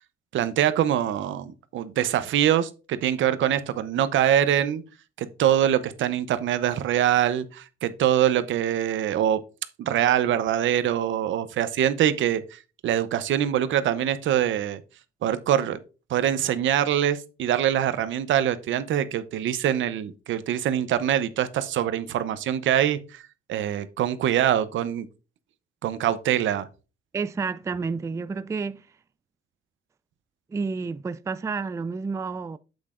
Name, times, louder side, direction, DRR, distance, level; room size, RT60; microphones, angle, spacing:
voice 1, 0.3-4.8 5.2-9.4 9.8-14.8 15.2-15.8 16.1-23.2 23.5-25.1 25.8-26.7, right 10 dB, 75° right, 0.8 m, -24 dB
voice 2, 27.1-28.9 30.5-32.6, right 4 dB, 15° right, 0.3 m, -30 dB
8.4 x 7.9 x 2.5 m
cardioid pair, 90°, 20 cm